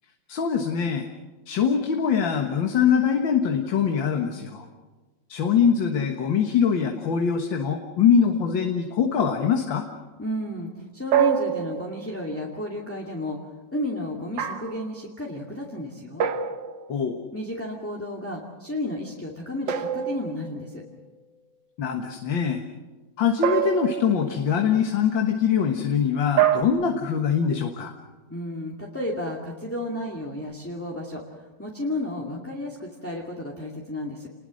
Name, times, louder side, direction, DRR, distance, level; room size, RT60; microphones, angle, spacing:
voice 1, 0.3-1.1 1.5-4.7 5.3-9.8 16.9-17.2 21.8-22.6 23.2-27.9, left 7 dB, 85° left, 4 dB, 2.2 m, -23 dB
voice 2, 10.2-13.4 13.7-16.3 17.3-20.8 28.3-34.3, left 1 dB, 5° left, -2 dB, 2.4 m, -32 dB
sound 1, 11.1-12.2 14.4-14.9 16.2-17.1 19.7-20.8 23.4-24.3 26.4-26.6, right 10 dB, 75° right, 1.9 m, -25 dB
29.0 x 20.5 x 6.4 m, 1.3 s
omnidirectional pair, 2.0 m